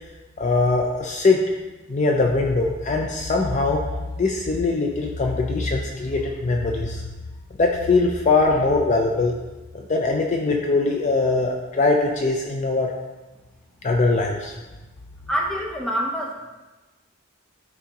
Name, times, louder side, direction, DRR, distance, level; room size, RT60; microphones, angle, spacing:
voice 1, 0.4-1.4 1.9-3.8 4.2-7.0 7.6-9.3 9.7-12.9 13.8-14.6, left 3 dB, 35° left, 1 dB, 0.4 m, -21 dB
voice 2, 15.3-16.4, equal, 5° left, -1 dB, 0.8 m, -26 dB
10.0 x 3.6 x 2.9 m, 1.1 s
head